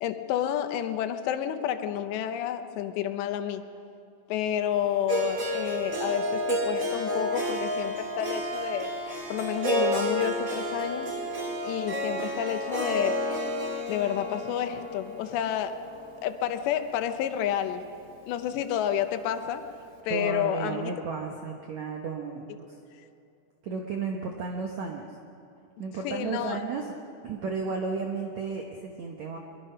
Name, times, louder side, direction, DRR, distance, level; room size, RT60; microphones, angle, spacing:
voice 1, 0.0-3.7 4.3-8.9 9.3-11.1 11.6-13.5 13.9-15.9 16.2-17.8 18.3-19.7 20.0-20.9 26.0-26.6, left 10 dB, 85° left, 10 dB, 3.1 m, -30 dB
Harp, 5.1-17.2, equal, 30° right, 1.6 m, -31 dB
voice 2, 20.1-22.7 23.6-25.0 25.8-26.9 27.2-29.4, right 5 dB, 75° right, 2 dB, 1.6 m, -33 dB
23.0 x 22.5 x 5.6 m, 2.6 s
omnidirectional pair, 4.9 m